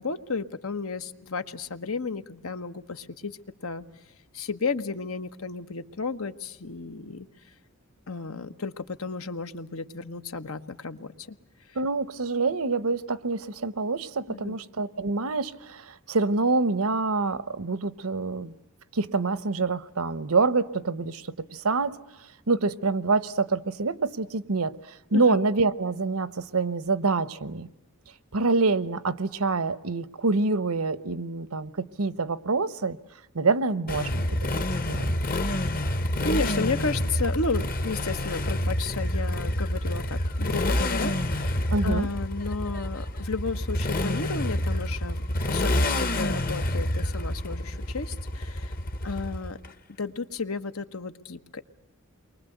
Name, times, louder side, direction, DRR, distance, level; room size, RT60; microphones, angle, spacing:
voice 1, 0.0-3.8 4.3-7.3 8.1-11.4 11.7-11.8 14.3-14.6 25.1-25.4 36.2-45.2 45.5-48.7 49.0-49.6 50.0-51.6, left 4 dB, 75° left, 1.3 m, -33 dB
voice 2, 11.7-18.5 18.9-22.0 22.5-27.7 28.3-33.0 33.3-34.4 34.9-35.1 41.7-42.1, right 3 dB, 85° right, 1.0 m, -26 dB
Motorcycle, 33.9-49.7, left 1 dB, 45° left, 1.3 m, -28 dB
29.5 x 23.5 x 8.0 m
head